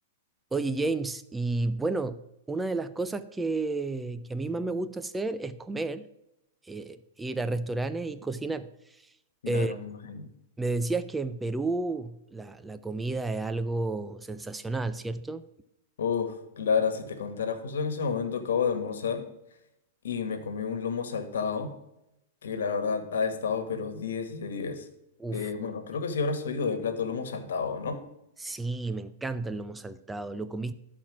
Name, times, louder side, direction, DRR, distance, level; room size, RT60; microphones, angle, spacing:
voice 1, 0.5-2.2 2.5-6.1 6.7-9.0 9.5-9.7 10.6-15.5 25.2-25.5 28.4-30.7, right 3 dB, 10° right, 12 dB, 0.3 m, -31 dB
voice 2, 9.4-10.3 16.0-19.3 20.0-21.7 22.4-24.9 25.3-28.0, left 5 dB, 85° left, 9 dB, 1.3 m, -30 dB
12.0 x 4.3 x 5.9 m, 0.86 s
hypercardioid pair, 145°, 0 cm